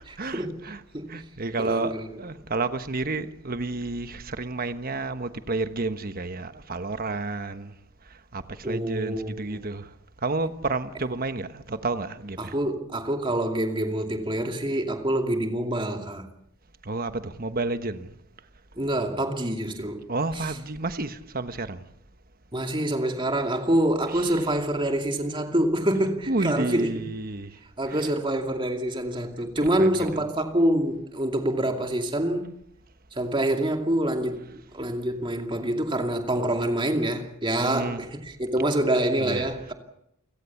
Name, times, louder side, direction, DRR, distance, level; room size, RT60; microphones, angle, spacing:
voice 1, 0.0-0.8 1.1-7.8 8.0-9.9 10.2-12.5 16.8-18.1 20.1-21.8 24.1-24.2 26.3-27.6 27.9-28.0 29.7-30.1 37.6-38.0 39.2-39.5, right 3 dB, 40° right, 1.2 m, -31 dB
voice 2, 1.6-2.1 8.6-9.6 12.4-16.3 18.8-20.0 20.3-20.5 22.5-26.9 27.8-32.5 33.2-39.7, right 1 dB, 20° right, 2.5 m, -26 dB
29.5 x 17.0 x 7.2 m
head